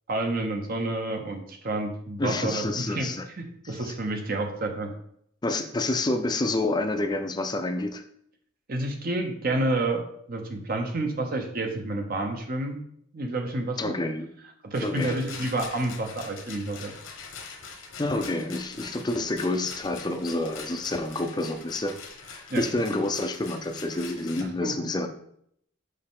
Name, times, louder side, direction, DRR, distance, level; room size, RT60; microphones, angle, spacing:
voice 1, 0.1-4.9 8.7-12.8 13.1-14.0 14.6-16.9 22.5-22.6 24.6-24.7, right 2 dB, 45° right, 3 dB, 0.8 m, -29 dB
voice 2, 2.2-3.2 3.6-3.9 5.4-8.0 13.8-14.3 14.8-15.2 18.0-22.0 22.3-25.1, left 2 dB, 20° left, 7 dB, 0.5 m, -28 dB
Rattle, 14.7-24.4, left 5 dB, 75° left, 1.1 m, -43 dB
6.6 x 5.3 x 3.7 m, 0.70 s
head